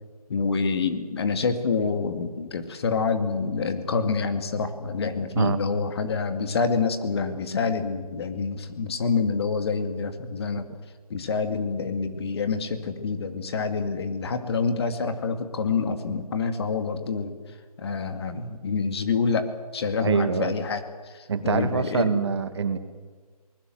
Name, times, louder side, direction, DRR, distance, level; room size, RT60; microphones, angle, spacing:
voice 1, 0.3-10.7 11.1-17.4 17.8-19.5 19.7-22.1, left 5 dB, 40° left, 9 dB, 2.3 m, -27 dB
voice 2, 20.0-20.5 21.3-22.8, right 6 dB, 45° right, 10 dB, 1.9 m, -25 dB
24.0 x 20.5 x 7.8 m, 1.5 s
figure-of-eight pair, 155°, 20 cm